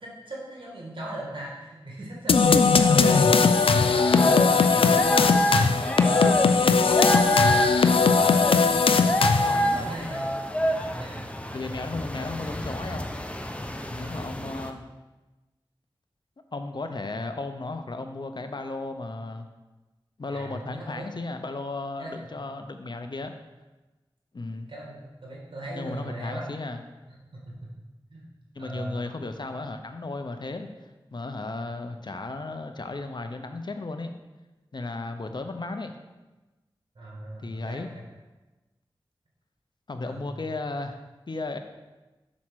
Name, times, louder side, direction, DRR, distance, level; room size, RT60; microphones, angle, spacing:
voice 1, 0.0-3.5 8.0-8.4 8.8-11.2 14.0-14.3 20.3-21.1 22.0-22.5 24.7-26.5 27.1-27.7 28.1-28.3 28.6-29.0 37.0-37.9 40.0-40.4, right 1 dB, 65° right, -4 dB, 1.8 m, -39 dB
sound 1, 2.3-9.7, left 5 dB, 80° left, 0.4 m, -19 dB
voice 2, 2.8-3.6 4.1-6.8 9.2-9.9 11.5-13.1 13.9-14.8 16.5-19.5 20.2-23.3 24.3-24.7 25.8-26.8 28.5-30.7 31.1-34.1 34.7-35.9 37.4-37.9 39.9-41.0 41.3-41.6, left 3 dB, 55° left, 7 dB, 0.7 m, -34 dB
sound 2, 3.5-14.7, equal, 15° left, 0.7 m, -28 dB
6.2 x 4.2 x 6.2 m, 1.1 s
cardioid pair, 45°, 9 cm